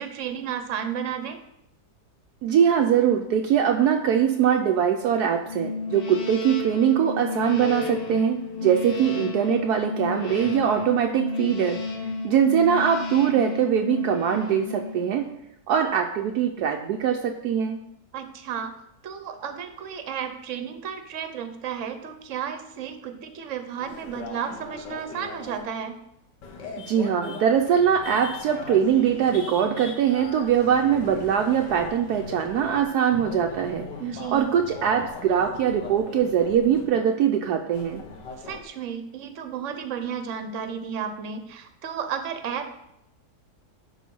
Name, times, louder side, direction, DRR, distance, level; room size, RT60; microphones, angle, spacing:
voice 1, 0.0-1.4 8.6-8.7 18.1-18.7 19.0-26.0 34.0-34.5 38.4-42.7, right 7 dB, 50° right, 7 dB, 1.1 m, -33 dB
voice 2, 2.4-11.8 12.2-15.3 15.7-17.8 26.8-33.9 34.3-38.0, right 8 dB, 75° right, 4 dB, 1.1 m, -22 dB
sound 1, 5.5-15.4, left 4 dB, 40° left, 1.0 m, -32 dB
sound 2, 23.8-25.6 26.4-32.9 33.1-36.9 37.7-38.6, left 4 dB, 90° left, 1.7 m, -40 dB
11.0 x 3.9 x 5.4 m, 0.79 s
omnidirectional pair, 1.8 m